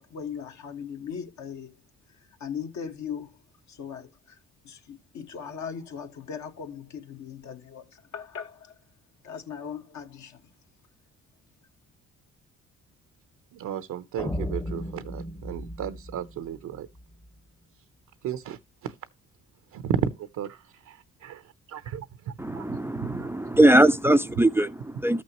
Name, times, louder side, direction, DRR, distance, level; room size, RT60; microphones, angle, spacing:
voice 1, 0.0-1.8 2.1-3.4 3.7-8.8 9.2-10.5, left 7 dB, 70° left, 1.5 m, -39 dB
voice 2, 13.5-16.9 18.2-18.9 19.7-23.3, right 9 dB, 70° right, 0.7 m, -34 dB
sound 1, 14.2-17.3, left 1 dB, 10° left, 0.8 m, -35 dB
voice 3, 22.4-25.2, right 1 dB, 10° right, 0.4 m, -21 dB
13.0 x 6.1 x 2.9 m
cardioid pair, 90°, 30 cm